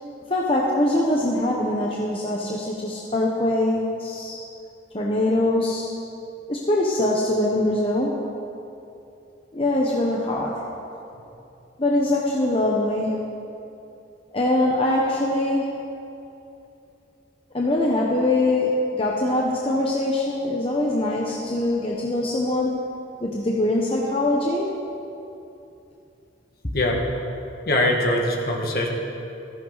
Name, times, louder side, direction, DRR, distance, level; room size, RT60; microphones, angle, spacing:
voice 1, 0.3-4.4 4.9-5.9 6.5-8.3 9.5-10.5 11.8-13.2 14.3-16.0 17.5-22.8 23.2-24.7 26.6-26.7, left 1 dB, 30° left, -3 dB, 1.1 m, -23 dB
voice 2, 27.7-28.9, left 1 dB, 55° left, 0 dB, 1.9 m, -22 dB
15.5 x 14.0 x 4.1 m, 2.8 s
head